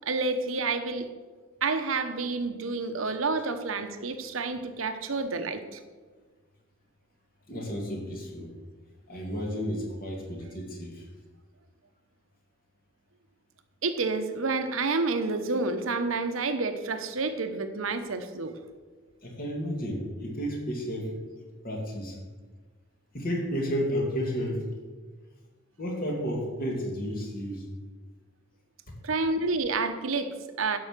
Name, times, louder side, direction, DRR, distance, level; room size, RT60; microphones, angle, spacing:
voice 1, 0.1-1.1 1.6-5.8 13.8-18.6 29.0-30.8, right 3 dB, 80° right, 8 dB, 0.9 m, -29 dB
voice 2, 7.5-8.5 9.1-11.0 19.2-21.1 21.6-22.2 23.1-24.7 25.8-27.6 28.9-29.0, equal, 45° left, 0 dB, 2.5 m, -32 dB
12.0 x 5.6 x 6.6 m, 1.4 s
head